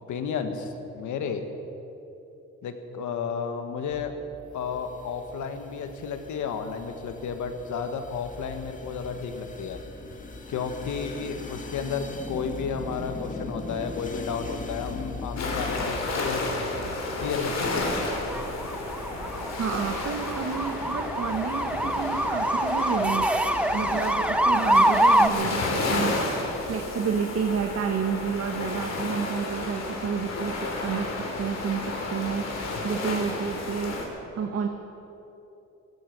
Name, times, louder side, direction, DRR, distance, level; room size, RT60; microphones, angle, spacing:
voice 1, 0.1-1.4 2.6-4.1 4.5-9.8 10.5-16.5 17.2-18.0, left 6 dB, 75° left, 7 dB, 1.6 m, -32 dB
sound 1, 3.9-15.9, left 3 dB, 25° left, 1.8 m, -40 dB
sound 2, 15.4-34.1, left 2 dB, 60° left, 3.2 m, -31 dB
sound 3, 17.4-25.3, right 1 dB, 5° right, 0.6 m, -25 dB
voice 2, 19.6-23.3 23.7-26.1 26.7-31.1 31.4-33.9 34.3-34.7, right 6 dB, 55° right, 4 dB, 1.2 m, -30 dB
15.5 x 15.0 x 6.1 m, 3.0 s
cardioid pair, 90°, 30 cm